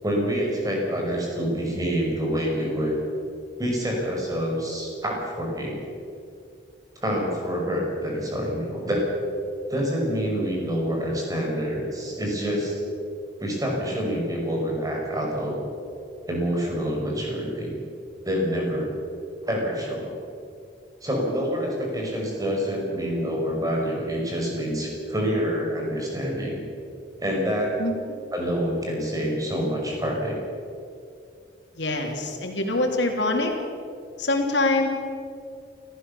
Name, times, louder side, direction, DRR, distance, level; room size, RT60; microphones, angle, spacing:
voice 1, 0.0-3.0 3.6-5.8 7.0-9.1 9.7-12.8 13.4-15.6 16.3-17.7 18.2-18.9 19.4-20.1 21.0-26.6 27.2-27.7 28.3-30.4, equal, 20° right, -1 dB, 5.7 m, -27 dB
voice 2, 31.7-33.5 34.2-34.9, left 2 dB, 85° left, 2 dB, 3.2 m, -24 dB
29.0 x 14.5 x 7.0 m, 2.5 s
head